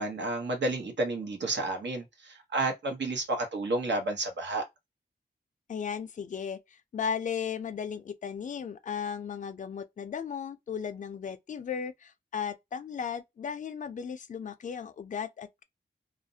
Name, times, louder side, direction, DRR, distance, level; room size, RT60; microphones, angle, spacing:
voice 1, 0.0-4.6, right 2 dB, 80° right, 0.9 m, -31 dB
voice 2, 5.7-15.6, left 7 dB, 45° left, 0.4 m, -36 dB
2.4 x 2.0 x 2.6 m
wide cardioid pair, 105°, 18 cm